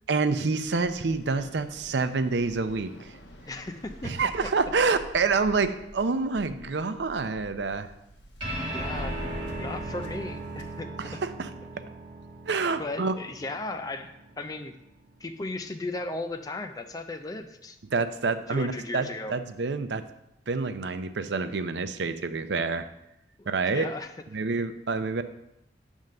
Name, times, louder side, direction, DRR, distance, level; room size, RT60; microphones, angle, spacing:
voice 1, 0.1-3.1 4.0-7.9 11.0-11.5 12.5-13.1 17.9-20.0 20.5-22.9 23.5-23.9 24.3-25.2, right 4 dB, 75° right, 10 dB, 0.6 m, -27 dB
Waves surf, 0.6-10.8, equal, 85° left, 1.3 m, -49 dB
voice 2, 3.5-4.2 4.4-4.5 8.7-11.2 11.7-11.9 12.8-14.7 15.2-17.8 18.5-19.3 23.4-24.1, left 2 dB, 20° left, 6 dB, 0.4 m, -36 dB
sound 1, 8.4-15.2, right 1 dB, 25° right, 2.4 m, -37 dB
9.0 x 3.6 x 6.5 m, 0.84 s
head